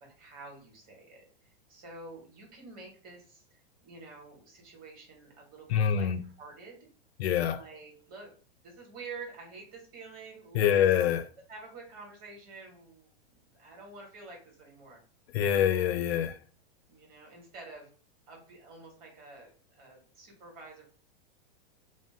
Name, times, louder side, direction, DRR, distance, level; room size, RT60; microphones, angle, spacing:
voice 1, 0.0-6.9 7.5-8.3 8.6-10.9 11.5-15.0 16.9-17.9 18.3-20.9, right 3 dB, 30° right, 1.1 m, -49 dB
voice 2, 5.7-6.2 7.2-7.6 10.5-11.3 15.3-16.4, left 9 dB, 85° left, 0.5 m, -25 dB
2.7 x 2.1 x 3.3 m
supercardioid pair, 150°, 31 cm